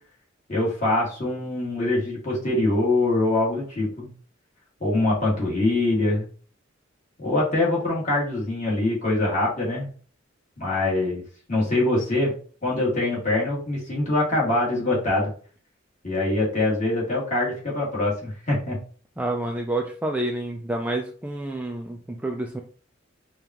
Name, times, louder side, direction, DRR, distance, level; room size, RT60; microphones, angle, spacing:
voice 1, 0.5-4.1 4.8-6.3 7.2-9.9 10.6-11.2 11.5-12.3 12.6-15.3 16.0-18.8, left 2 dB, 40° left, -5 dB, 1.9 m, -24 dB
voice 2, 19.2-22.6, right 1 dB, 5° right, 2 dB, 0.3 m, -28 dB
5.1 x 2.3 x 2.9 m, 0.42 s
head